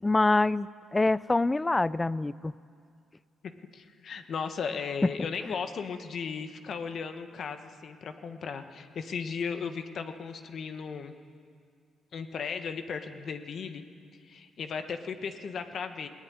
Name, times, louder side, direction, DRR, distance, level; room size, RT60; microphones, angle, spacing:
voice 1, 0.0-2.5, left 2 dB, 20° left, 19 dB, 0.5 m, -25 dB
voice 2, 3.7-11.1 12.1-13.8 14.3-16.1, left 6 dB, 60° left, 8 dB, 1.4 m, -36 dB
19.0 x 18.0 x 9.5 m, 2.2 s
cardioid pair, 90°, 0 cm